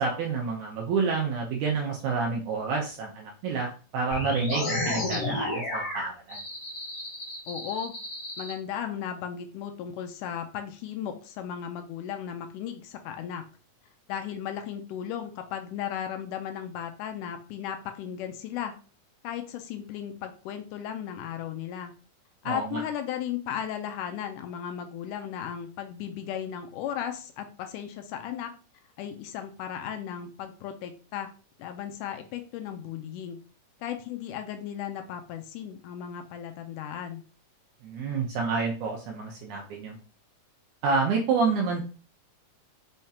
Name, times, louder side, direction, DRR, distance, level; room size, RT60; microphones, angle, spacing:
voice 1, 0.0-6.4 22.4-22.8 37.8-40.0 40.8-41.9, right 4 dB, 75° right, 0 dB, 2.1 m, -28 dB
sound 1, 4.1-8.5, left 2 dB, 60° left, 0.9 m, -32 dB
voice 2, 7.5-7.9 8.4-13.4 14.1-18.8 19.2-21.9 22.4-28.5 29.0-31.3 31.6-33.4 33.8-37.2, left 9 dB, 80° left, 6 dB, 2.1 m, -35 dB
5.6 x 3.4 x 2.7 m, 0.37 s
omnidirectional pair, 3.8 m